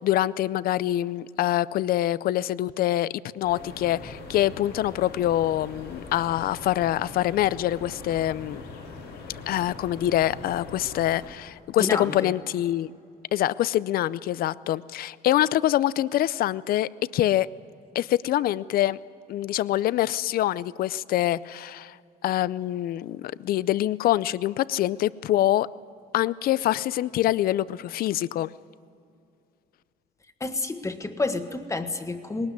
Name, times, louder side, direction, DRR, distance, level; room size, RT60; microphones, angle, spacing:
voice 1, 0.0-8.6 9.5-12.9 13.3-17.5 17.9-19.0 19.3-22.0 22.2-25.7 26.1-28.5, left 13 dB, 60° left, 19 dB, 0.5 m, -25 dB
sound 1, 3.4-11.3, left 3 dB, 85° left, 5.6 m, -42 dB
voice 2, 11.8-12.3 30.4-32.5, left 3 dB, 20° left, 8 dB, 1.5 m, -29 dB
19.5 x 18.5 x 9.7 m, 2.5 s
cardioid pair, 110°, 17 cm